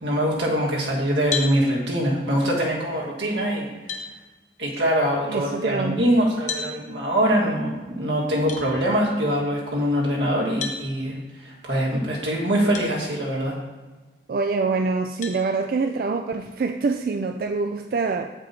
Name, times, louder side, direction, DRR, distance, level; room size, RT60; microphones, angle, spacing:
voice 1, 0.0-3.7 4.6-11.2 11.4-13.6, equal, 90° right, -3 dB, 1.9 m, -23 dB
sound 1, 1.3-1.6 3.2-3.3 3.9-4.1 6.5-6.7 8.5-8.6 10.6-10.8 12.7-12.9 13.5-13.6 15.2-15.4, left 6 dB, 45° left, 0.8 m, -30 dB
voice 2, 5.3-6.1 14.3-18.3, right 4 dB, 55° right, 6 dB, 0.3 m, -25 dB
8.3 x 5.2 x 4.3 m, 1.2 s
head